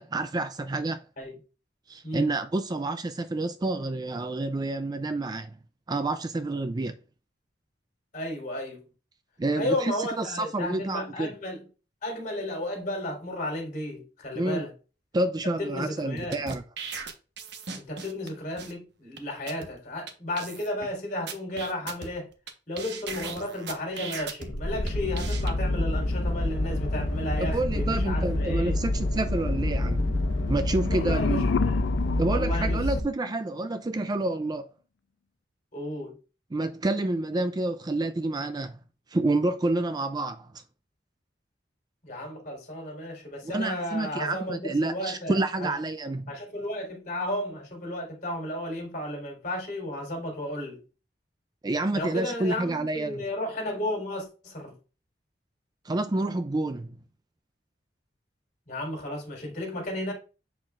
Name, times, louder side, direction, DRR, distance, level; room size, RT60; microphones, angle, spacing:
voice 1, 0.0-1.0 1.9-5.6 5.9-7.0 9.4-11.3 14.4-14.7 15.1-16.6 27.4-30.1 30.5-31.5 32.2-34.7 36.5-38.8 39.1-40.6 43.4-46.3 51.6-53.2 55.8-57.0, right 2 dB, 20° right, 0.4 m, -29 dB
voice 2, 8.1-8.8 9.5-11.7 12.0-14.7 15.6-16.4 17.8-22.3 22.7-28.7 30.9-31.8 32.3-32.8 35.7-36.2 42.0-45.7 46.3-50.8 51.9-54.8 58.7-60.1, left 1 dB, 45° left, 3.9 m, -33 dB
sound 1, 16.2-18.3 18.6-18.7 19.2-19.3 19.5-19.7 20.1-20.2 20.4-20.9 21.3-22.5 22.8-24.5 24.9-25.5, right 5 dB, 65° right, 1.2 m, -38 dB
sound 2, 24.5-33.0, left 1 dB, 85° left, 1.1 m, -27 dB
sound 3, 30.3-33.4, left 6 dB, 65° left, 0.3 m, -32 dB
8.0 x 6.6 x 2.4 m
head